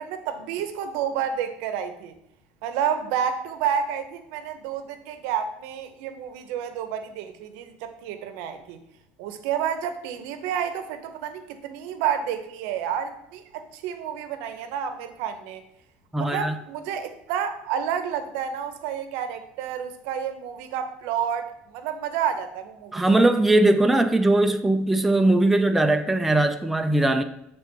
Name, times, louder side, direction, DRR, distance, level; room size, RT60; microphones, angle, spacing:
voice 1, 0.0-2.1 2.6-8.8 9.2-15.6 16.2-23.0, right 8 dB, 80° right, 8 dB, 0.7 m, -30 dB
voice 2, 16.1-16.5 22.9-27.2, right 2 dB, 5° right, 6 dB, 0.3 m, -20 dB
6.6 x 3.4 x 4.4 m, 0.80 s
cardioid pair, 145°, 4 cm